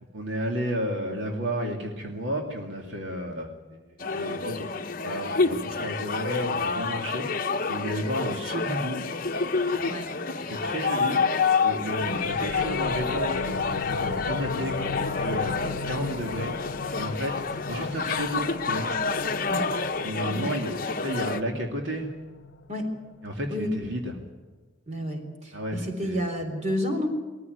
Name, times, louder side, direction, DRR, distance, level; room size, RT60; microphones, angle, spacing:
voice 1, 0.1-3.8 4.1-4.7 5.0-7.4 7.7-9.0 10.5-11.2 11.6-16.7 16.9-18.9 20.0-22.1 23.2-24.1 25.5-26.3, equal, 70° right, 2 dB, 2.6 m, -32 dB
sound 1, 4.0-21.4, left 4 dB, 45° left, 0.9 m, -28 dB
sound 2, 12.0-23.4, left 4 dB, 80° left, 0.8 m, -36 dB
voice 2, 24.9-27.1, equal, 35° right, 4 dB, 3.7 m, -30 dB
21.5 x 14.5 x 9.4 m, 1.3 s
head